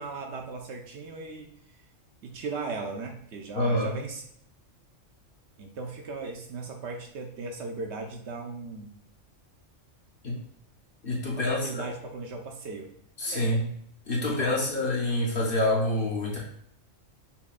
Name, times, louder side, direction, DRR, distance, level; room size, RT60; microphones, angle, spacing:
voice 1, 0.0-1.5 2.2-4.2 5.6-8.9 11.4-12.9 13.3-13.4 14.2-14.6, right 3 dB, 70° right, 3 dB, 0.8 m, -37 dB
voice 2, 3.6-3.9 10.2-10.4 11.0-11.8 13.2-13.7 14.1-16.4, left 1 dB, 55° left, -2 dB, 0.8 m, -27 dB
5.6 x 2.2 x 2.4 m, 0.66 s
omnidirectional pair, 1.3 m